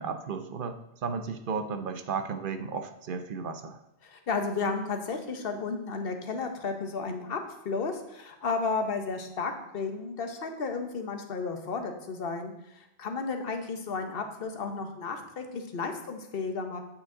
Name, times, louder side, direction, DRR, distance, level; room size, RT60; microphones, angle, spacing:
voice 1, 0.0-3.8, right 5 dB, 55° right, 8 dB, 0.8 m, -34 dB
voice 2, 4.0-16.8, left 4 dB, 60° left, 6 dB, 1.1 m, -33 dB
8.2 x 6.1 x 3.8 m, 0.88 s
omnidirectional pair, 1.1 m